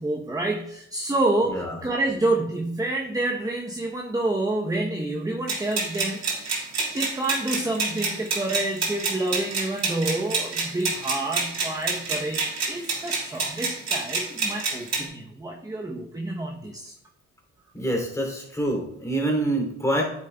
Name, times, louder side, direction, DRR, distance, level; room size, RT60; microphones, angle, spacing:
voice 1, 0.0-6.2 6.5-6.7 6.9-16.9, right 2 dB, 10° right, 1 dB, 0.8 m, -28 dB
sound 1, 5.5-15.1, right 4 dB, 60° right, 3.2 m, -28 dB
voice 2, 17.7-20.0, right 1 dB, 10° left, 0 dB, 2.8 m, -26 dB
9.4 x 7.2 x 2.2 m, 0.74 s
cardioid pair, 90°, 30 cm